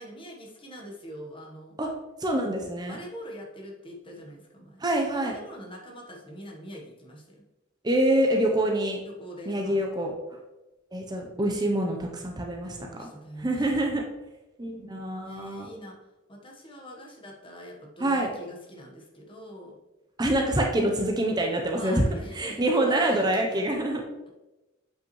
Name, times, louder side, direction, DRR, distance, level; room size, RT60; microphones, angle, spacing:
voice 1, 0.0-1.8 2.9-7.4 9.0-9.9 12.6-14.0 15.2-16.0 16.3-19.8 21.7-23.6, equal, 25° left, 0 dB, 1.3 m, -43 dB
voice 2, 2.2-3.0 4.8-5.3 7.8-9.0 9.5-10.4 10.9-13.1 13.4-14.0 14.6-15.7 18.0-18.3 20.2-22.0 22.3-24.0, right 1 dB, 20° right, 2 dB, 0.7 m, -26 dB
7.9 x 5.6 x 3.1 m, 1.0 s
head